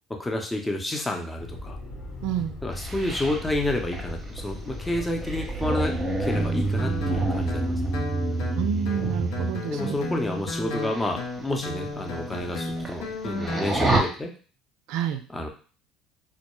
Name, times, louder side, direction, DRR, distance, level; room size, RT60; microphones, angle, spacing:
voice 1, 0.1-1.8 2.6-5.9 6.2-7.8 9.7-14.3 15.3-15.5, left 1 dB, 15° left, 2 dB, 0.6 m, -30 dB
Motor vehicle (road), 1.4-8.0, left 2 dB, 50° left, 0.9 m, -37 dB
voice 2, 2.2-2.6 8.6-10.0 14.9-15.2, right 10 dB, 70° right, 7 dB, 0.3 m, -29 dB
sound 1, 2.8-9.6 10.7-11.1 11.4-11.5 12.1-12.2 12.4-13.1 13.3-14.0, right 2 dB, 20° right, 0.7 m, -27 dB
Guitar, 6.3-13.7, left 2 dB, 75° left, 0.6 m, -34 dB
2.2 x 2.1 x 3.0 m, 0.38 s
hypercardioid pair, 75°, 0 cm